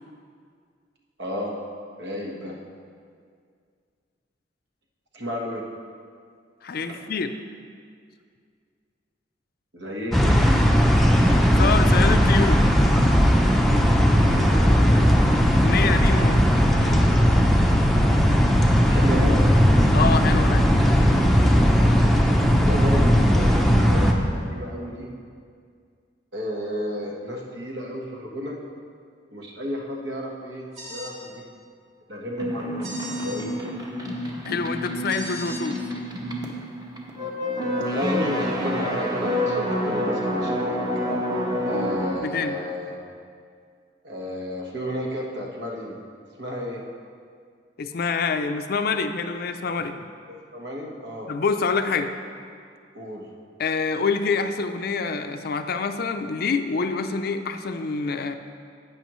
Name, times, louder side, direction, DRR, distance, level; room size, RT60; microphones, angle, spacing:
voice 1, 1.2-1.6 2.0-2.6 5.1-5.6 6.9-7.0 9.7-10.4 14.3-15.3 18.9-19.5 22.6-25.1 26.3-28.6 29.3-31.4 32.1-33.8 37.9-40.8 41.6-43.0 44.0-46.0 46.4-46.8 50.3-51.3 52.9-53.2, equal, 65° right, -2 dB, 1.4 m, -32 dB
voice 2, 6.6-7.3 11.6-12.9 15.5-16.5 19.9-20.7 34.5-35.8 42.2-42.6 47.8-50.0 51.3-52.1 53.6-58.4, left 4 dB, 55° left, 8 dB, 0.5 m, -26 dB
sound 1, 10.1-24.1, equal, ahead, 0.6 m, -18 dB
sound 2, 30.7-31.2 32.8-33.4 35.1-35.6, equal, 40° right, 1.5 m, -38 dB
sound 3, 32.4-42.2, equal, 20° right, 1.0 m, -28 dB
11.0 x 8.6 x 3.1 m, 2.2 s
head